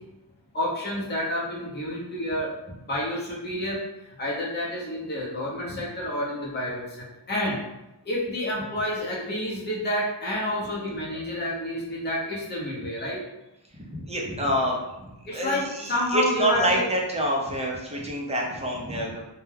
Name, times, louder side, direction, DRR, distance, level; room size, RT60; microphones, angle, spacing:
voice 1, 0.5-2.5 2.9-3.8 4.2-7.6 8.0-13.2 15.3-15.6 15.9-16.9, left 1 dB, 20° left, -6 dB, 0.7 m, -29 dB
voice 2, 13.7-19.2, right 1 dB, 15° right, -2 dB, 0.6 m, -27 dB
2.3 x 2.2 x 3.2 m, 0.94 s
wide cardioid pair, 90°, 47 cm